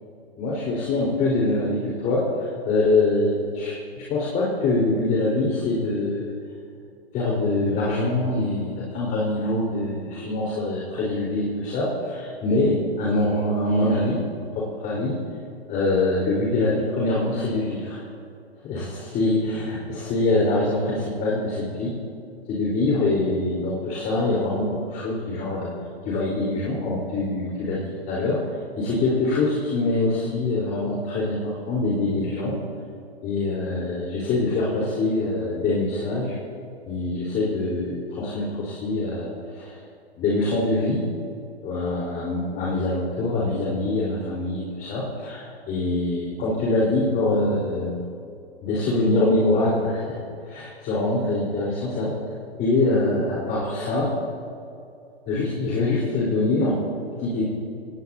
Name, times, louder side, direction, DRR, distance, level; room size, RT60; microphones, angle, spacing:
voice 1, 0.4-6.3 7.1-14.2 14.5-15.2 15.7-18.0 18.6-21.9 22.5-25.7 26.0-27.8 28.1-28.4 28.8-32.5 33.2-36.3 36.8-39.7 40.2-41.0 41.6-48.0 48.6-50.2 50.5-52.1 52.6-54.1 55.3-56.8 57.2-57.5, left 2 dB, 25° left, -5 dB, 4.3 m, -24 dB
26.0 x 19.0 x 2.8 m, 2.5 s
figure-of-eight pair, 115°, 32 cm